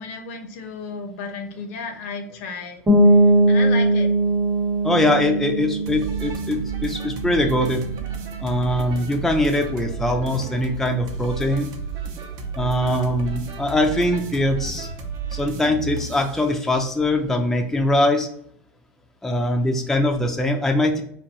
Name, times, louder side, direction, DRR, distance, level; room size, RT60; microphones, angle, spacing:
voice 1, 0.0-2.8 3.5-4.1, left 4 dB, 70° left, 6 dB, 0.6 m, -33 dB
sound 1, 2.9-8.5, right 1 dB, 20° right, 0.9 m, -20 dB
voice 2, 4.8-7.8 8.4-11.7 12.6-14.9 15.3-18.3 19.2-21.0, left 1 dB, 5° left, 3 dB, 0.4 m, -22 dB
sound 2, 5.9-16.4, right 5 dB, 45° right, 0.6 m, -32 dB
3.5 x 2.2 x 2.8 m, 0.68 s
hypercardioid pair, 105°, 8 cm